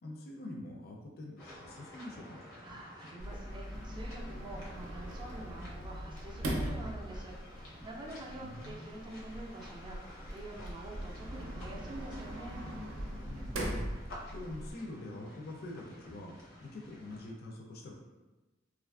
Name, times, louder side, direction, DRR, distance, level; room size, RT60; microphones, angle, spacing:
voice 1, 0.0-2.4 8.2-8.9 13.3-13.9 14.3-17.9, left 1 dB, 50° left, 0 dB, 0.4 m, -45 dB
sound 1, 1.4-17.3, left 1 dB, 85° left, 0.8 m, -52 dB
voice 2, 2.6-12.6, right 1 dB, 25° right, -1 dB, 0.3 m, -47 dB
Sliding door, 3.2-14.7, right 1 dB, 80° right, 0.5 m, -41 dB
2.9 x 2.4 x 2.3 m, 1.1 s
head